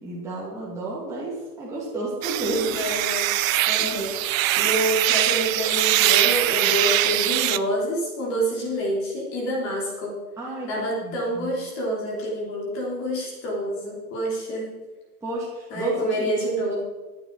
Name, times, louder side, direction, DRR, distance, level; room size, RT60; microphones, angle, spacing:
voice 1, 0.0-2.7 3.8-4.1 4.6-4.7 10.4-11.5 15.2-16.2, right 2 dB, 5° right, -7 dB, 2.3 m, -32 dB
sound 1, 2.2-7.6, right 15 dB, 60° right, 0.5 m, -22 dB
voice 2, 2.4-3.3 3.7-10.2 10.7-14.7 15.7-16.8, equal, 30° left, -2 dB, 3.3 m, -27 dB
14.0 x 8.6 x 4.7 m, 1.2 s
hypercardioid pair, 160°, 46 cm